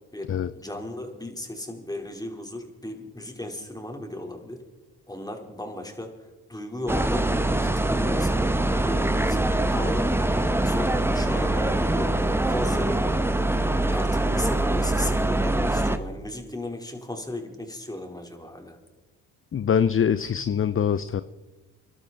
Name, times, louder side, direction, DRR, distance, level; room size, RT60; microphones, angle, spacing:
voice 1, 0.1-4.6 5.1-6.1 6.5-10.3 10.6-12.2 12.4-13.1 13.9-18.8, left 1 dB, 10° left, 3 dB, 3.4 m, -36 dB
sound 1, 6.9-16.0, right 1 dB, 5° right, 1.1 m, -23 dB
voice 2, 19.5-21.2, left 8 dB, 35° left, 14 dB, 0.6 m, -23 dB
24.0 x 12.0 x 3.9 m, 1.2 s
supercardioid pair, 60°, 38 cm